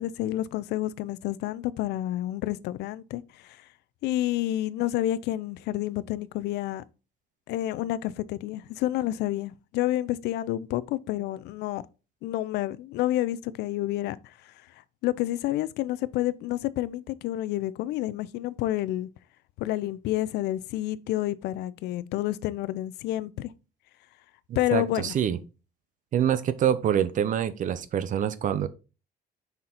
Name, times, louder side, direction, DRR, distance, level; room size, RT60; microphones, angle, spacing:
voice 1, 0.0-3.6 4.0-6.8 7.5-11.8 12.2-14.5 15.0-19.1 19.6-23.5 24.6-25.2, left 14 dB, 80° left, 0.5 m, -29 dB
voice 2, 24.7-25.4 26.1-28.7, right 9 dB, 50° right, 0.7 m, -25 dB
5.7 x 3.8 x 4.3 m
cardioid pair, 110°, 17 cm